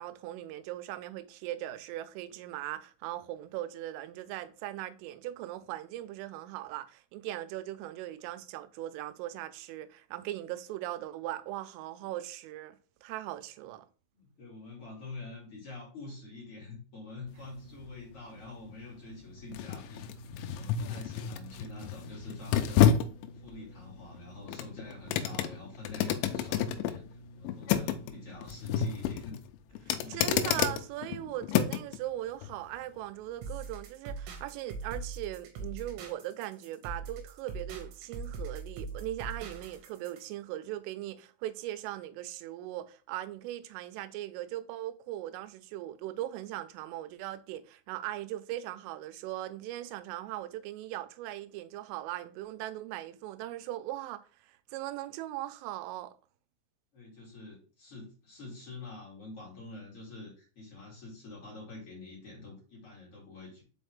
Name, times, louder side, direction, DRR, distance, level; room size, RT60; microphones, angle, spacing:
voice 1, 0.0-13.9 29.9-56.2, right 14 dB, 90° right, 3.2 m, -39 dB
voice 2, 14.1-22.9 23.3-29.4 29.7-30.7 56.9-63.6, left 3 dB, 40° left, 2.2 m, -47 dB
sound 1, 17.3-32.0 32.4-32.6, left 9 dB, 80° left, 2.8 m, -31 dB
sound 2, 33.4-40.3, right 4 dB, 75° right, 2.6 m, -41 dB
6.3 x 4.9 x 3.4 m
omnidirectional pair, 5.7 m